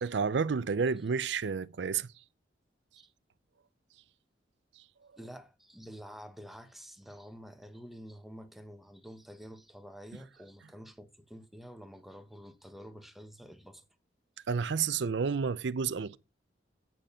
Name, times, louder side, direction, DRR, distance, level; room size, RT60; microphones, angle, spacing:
voice 1, 0.0-2.1 14.5-16.2, right 5 dB, 80° right, 0.5 m, -30 dB
voice 2, 5.2-13.9, equal, ahead, 0.9 m, -49 dB
8.5 x 6.2 x 5.5 m
head